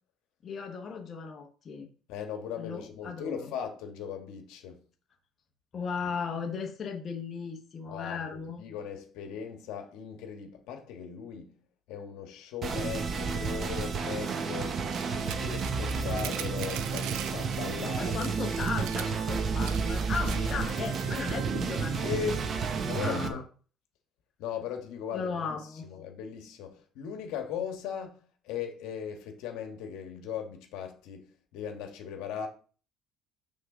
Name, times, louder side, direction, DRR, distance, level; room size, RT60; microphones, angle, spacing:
voice 1, 0.4-1.9 2.6-3.5 5.7-8.7 17.7-22.1 22.9-23.4 25.1-25.9, left 5 dB, 35° left, 0.9 m, -36 dB
voice 2, 2.1-4.8 7.9-11.5 11.9-14.8 15.1-18.3 20.2-20.8 22.0-22.4 22.9-23.4 24.4-25.6 25.8-28.2 28.4-31.2 31.5-32.5, left 7 dB, 80° left, 1.4 m, -38 dB
sound 1, 12.6-23.3, right 5 dB, 40° right, 1.0 m, -31 dB
sound 2, 14.9-17.6 17.9-18.0 18.2-20.5, right 11 dB, 85° right, 0.5 m, -41 dB
6.4 x 3.6 x 6.0 m
cardioid pair, 135°, 0 cm